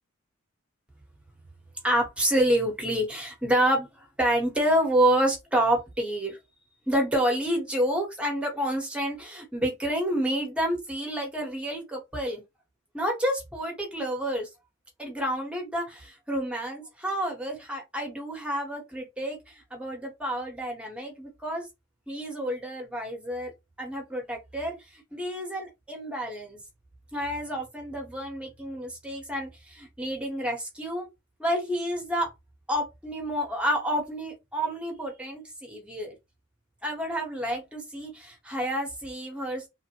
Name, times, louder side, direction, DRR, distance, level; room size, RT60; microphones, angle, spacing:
voice 1, 1.8-6.4 6.9-12.4 12.9-14.5 15.0-21.7 22.1-23.5 23.8-26.6 27.1-31.1 31.4-32.3 32.7-36.2 36.8-39.7, right 1 dB, 5° right, 1 dB, 0.8 m, -29 dB
3.0 x 2.1 x 2.8 m, 0.22 s
head